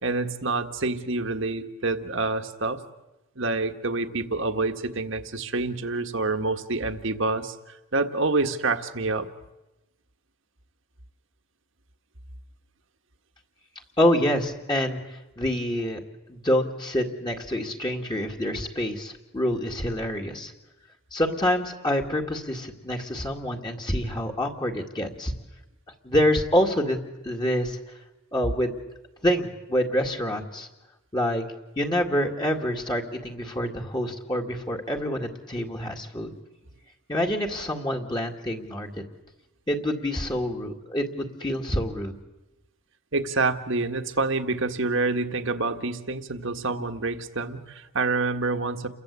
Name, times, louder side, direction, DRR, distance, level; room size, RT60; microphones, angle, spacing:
voice 1, 0.0-2.8 3.4-7.5 7.9-9.3 43.1-48.9, right 3 dB, 55° right, 7 dB, 1.6 m, -27 dB
voice 2, 14.0-16.0 16.3-20.5 21.1-25.3 26.0-27.0 27.2-27.8 28.3-28.8 29.2-30.7 31.1-31.4 31.8-36.3 37.1-38.9 39.7-42.2, equal, 20° left, 1 dB, 2.1 m, -26 dB
29.5 x 22.5 x 8.4 m, 0.98 s
head